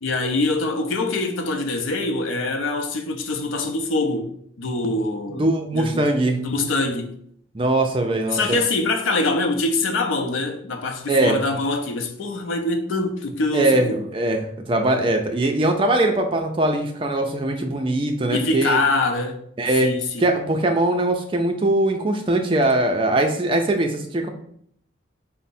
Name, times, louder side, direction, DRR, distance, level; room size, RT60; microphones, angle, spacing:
voice 1, 0.0-4.3 4.6-5.5 5.7-6.1 6.4-7.1 8.3-14.0 18.3-19.4 19.8-20.3, left 2 dB, 90° left, 0.5 m, -24 dB
voice 2, 5.3-6.4 7.5-8.6 11.1-11.4 13.5-18.8 19.6-19.9 20.2-24.3, right 1 dB, 25° right, 0.4 m, -21 dB
4.4 x 2.1 x 4.1 m
head